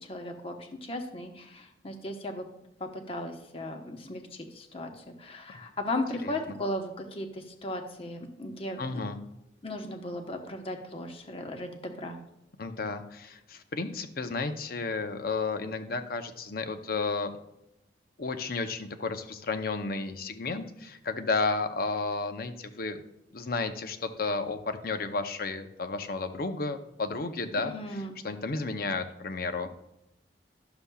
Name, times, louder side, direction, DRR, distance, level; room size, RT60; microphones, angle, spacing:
voice 1, 0.0-2.4 2.8-8.8 9.6-12.2 27.6-28.2, left 1 dB, 30° left, 3 dB, 1.0 m, -36 dB
voice 2, 6.2-6.6 8.8-9.2 12.6-17.3 18.2-23.0 23.3-27.7 28.2-29.7, left 3 dB, 55° left, 8 dB, 0.7 m, -32 dB
11.5 x 6.9 x 2.3 m, 0.83 s
head